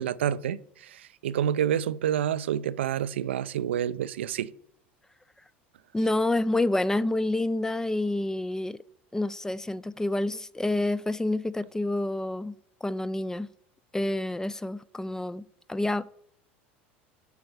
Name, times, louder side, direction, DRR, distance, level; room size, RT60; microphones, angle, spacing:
voice 1, 0.0-4.5, right 10 dB, 75° right, 0.4 m, -28 dB
voice 2, 5.9-8.8 9.1-12.6 12.8-13.5 13.9-16.0, left 2 dB, 10° left, 0.4 m, -28 dB
8.0 x 5.1 x 6.4 m
hypercardioid pair, 80°, 6 cm